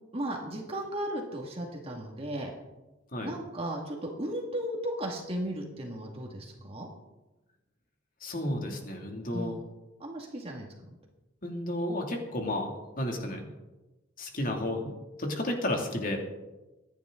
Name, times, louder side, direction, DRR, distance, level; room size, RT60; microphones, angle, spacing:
voice 1, 0.1-2.5 3.2-6.9 9.3-9.5 10.0-10.7, right 1 dB, 30° right, 0 dB, 2.0 m, -35 dB
voice 2, 8.2-9.5 11.4-13.5 14.2-14.9 15.2-16.2, left 1 dB, 40° left, 2 dB, 2.5 m, -32 dB
24.5 x 10.5 x 3.8 m, 1.1 s
head